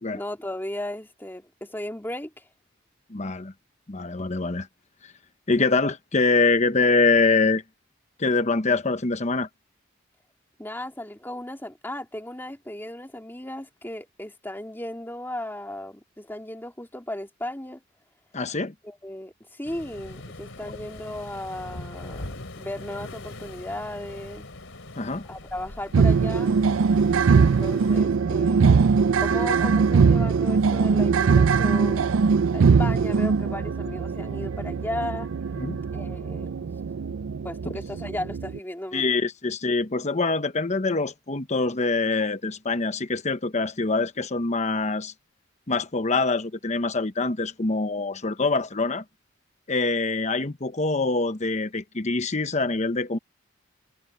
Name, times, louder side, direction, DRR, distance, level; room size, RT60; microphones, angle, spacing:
voice 1, 0.1-2.5 10.6-17.8 18.8-22.3 22.6-24.5 25.2-26.6 27.3-35.3 35.9-36.5 37.4-39.1, left 1 dB, 10° left, 2.8 m, -36 dB
voice 2, 3.1-3.5 3.9-4.7 5.5-7.6 8.2-9.5 18.3-18.7 25.0-25.3 35.6-35.8 38.9-45.1 45.7-49.0 49.7-53.2, left 3 dB, 35° left, 1.0 m, -24 dB
Waves surf, 19.6-28.0, left 2 dB, 80° left, 3.3 m, -41 dB
sound 1, 25.9-38.6, right 5 dB, 85° right, 0.4 m, -21 dB
head